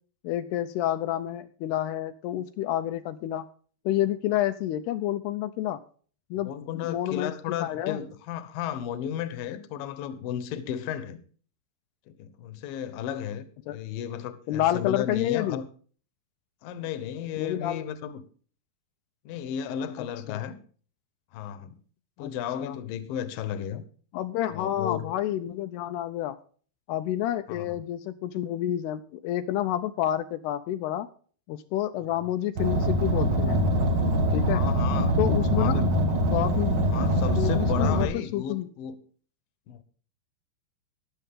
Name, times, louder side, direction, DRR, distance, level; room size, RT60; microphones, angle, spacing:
voice 1, 0.2-3.5 3.9-5.8 6.3-7.3 7.6-8.0 13.7-13.8 14.5-15.6 17.4-17.8 20.3-20.4 22.2-22.3 22.6-22.8 24.1-26.4 26.9-31.1 31.5-33.6 34.3-34.6 35.2-35.8 36.3-36.8 37.3-38.7, left 12 dB, 85° left, 2.7 m, -29 dB
voice 2, 6.3-11.2 12.1-15.7 16.6-18.2 19.3-20.6 21.3-21.8 22.2-23.8 24.5-25.1 27.5-27.8 34.5-35.2 35.5-35.9 36.9-39.0 39.7-39.8, left 9 dB, 70° left, 2.6 m, -34 dB
Car, 32.6-38.0, equal, 60° right, 1.1 m, -24 dB
14.5 x 11.0 x 3.6 m
omnidirectional pair, 4.6 m